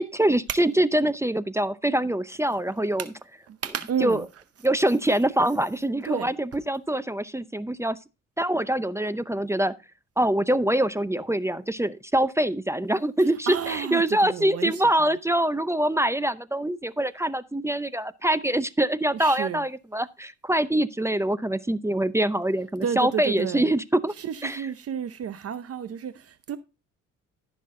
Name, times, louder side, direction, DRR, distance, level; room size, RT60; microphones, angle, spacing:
voice 1, 0.0-3.0 4.0-4.2 4.6-8.0 8.4-9.7 10.2-24.1 24.4-24.6, right 1 dB, 10° right, 0.5 m, -24 dB
voice 2, 3.5-4.3 6.0-6.3 13.2-15.2 19.1-19.6 22.8-23.7 24.1-26.6, right 8 dB, 50° right, 0.7 m, -31 dB
14.0 x 6.2 x 3.7 m
cardioid pair, 90°, 30 cm